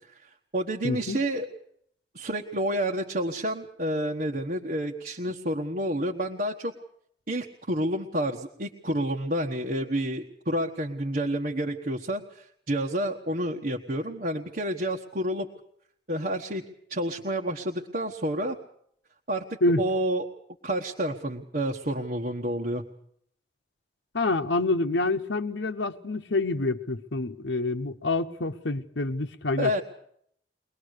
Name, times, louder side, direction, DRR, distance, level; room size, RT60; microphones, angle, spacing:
voice 1, 0.1-1.5 2.1-6.7 7.3-15.5 16.1-16.6 16.9-18.6 19.3-19.4 19.8-20.3 20.6-22.8 29.6-29.8, right 1 dB, 50° right, 1.3 m, -29 dB
voice 2, 0.8-1.2 19.6-19.8 24.1-29.8, left 2 dB, 80° left, 1.0 m, -27 dB
23.5 x 19.5 x 6.6 m
head